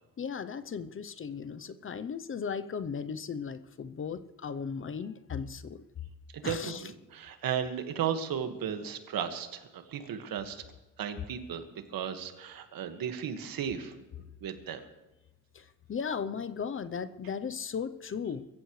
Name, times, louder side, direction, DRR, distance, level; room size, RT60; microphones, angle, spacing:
voice 1, 0.2-5.8 6.4-6.8 15.5-18.5, left 6 dB, 35° left, 12 dB, 0.7 m, -36 dB
voice 2, 6.3-10.6 11.0-11.6 11.9-13.9 14.4-14.8, right 8 dB, 80° right, 7 dB, 1.8 m, -35 dB
24.0 x 15.0 x 3.3 m, 1.1 s
cardioid pair, 130°, 34 cm